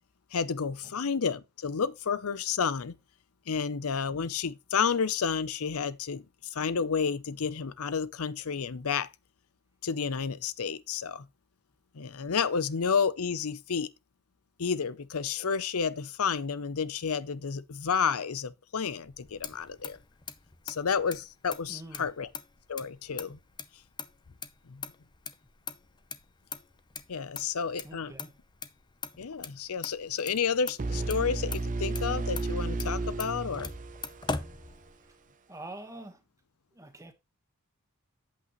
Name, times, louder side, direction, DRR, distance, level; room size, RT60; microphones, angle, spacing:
voice 1, 0.3-2.9 3.5-9.1 9.8-11.3 11.9-13.9 14.6-20.0 20.7-22.3 22.7-23.4 24.7-24.8 27.1-28.1 29.2-33.7, left 6 dB, 65° left, 0.6 m, -31 dB
Motor vehicle (road), 19.0-35.3, left 5 dB, 20° left, 0.6 m, -42 dB
voice 2, 21.7-22.1 27.8-28.3 35.5-36.2 36.7-37.1, right 1 dB, 15° right, 1.3 m, -44 dB
sound 1, 30.8-34.7, right 2 dB, 35° right, 0.5 m, -33 dB
8.4 x 8.2 x 3.1 m
head